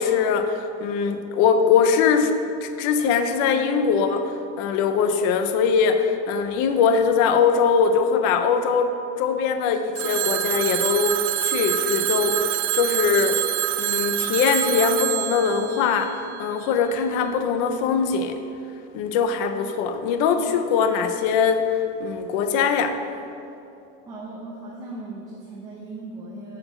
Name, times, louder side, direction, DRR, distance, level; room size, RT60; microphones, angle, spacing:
voice 1, 0.0-2.3 2.6-4.3 4.6-8.9 9.2-13.4 13.8-18.4 18.9-23.0, left 6 dB, 30° left, 8 dB, 0.4 m, -22 dB
Telephone, 10.0-16.8, right 16 dB, 70° right, 0.5 m, -26 dB
voice 2, 24.1-26.6, right 2 dB, 10° right, -5 dB, 0.6 m, -37 dB
7.9 x 5.7 x 6.2 m, 2.7 s
supercardioid pair, 180°, 36 cm